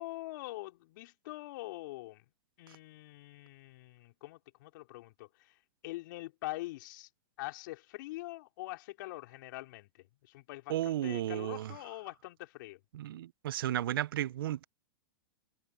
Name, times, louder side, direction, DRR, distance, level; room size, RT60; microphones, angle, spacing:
voice 1, 0.0-2.2 2.6-5.3 5.8-7.1 7.4-9.9 10.2-12.8, left 19 dB, 55° left, 4.0 m, -44 dB
voice 2, 10.7-11.7 12.9-14.6, right 12 dB, 70° right, 0.9 m, -33 dB
hypercardioid pair, 115°, 12 cm